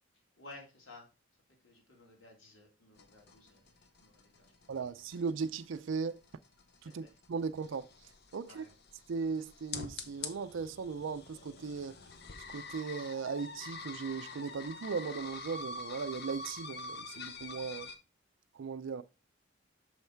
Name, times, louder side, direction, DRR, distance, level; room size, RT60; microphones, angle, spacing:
voice 1, 0.4-1.1 1.6-3.7 4.0-4.7 6.8-7.2 8.4-8.7, left 2 dB, 80° left, 2.7 m, -55 dB
sound 1, 3.0-18.0, left 4 dB, 55° left, 0.9 m, -46 dB
voice 2, 4.7-6.2 6.8-7.9 8.3-8.7 9.1-12.0 12.5-17.9 18.6-19.0, right 5 dB, 75° right, 0.4 m, -37 dB
6.4 x 5.6 x 4.4 m
head